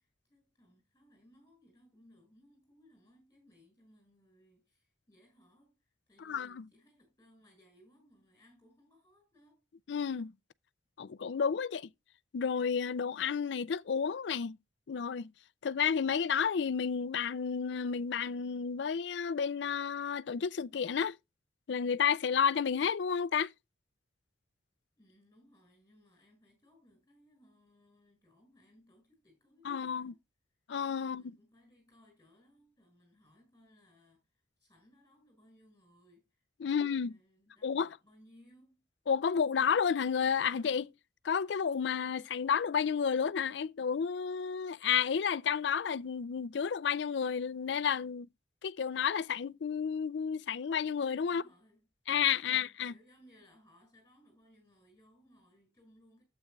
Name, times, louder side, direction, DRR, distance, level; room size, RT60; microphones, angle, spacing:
voice 1, 0.0-9.6 25.0-30.2 31.0-38.8 51.2-51.8 52.4-56.2, equal, 15° left, 6.5 m, -64 dB
voice 2, 6.2-6.6 9.9-10.3 11.0-11.9 12.3-14.6 14.9-15.3 15.6-21.2 21.7-23.5 29.6-30.1 30.7-31.2 36.6-37.1 37.6-37.9 39.1-40.9 41.2-48.3 48.6-51.4 52.1-52.9, left 7 dB, 70° left, 0.4 m, -31 dB
12.5 x 8.6 x 2.3 m
head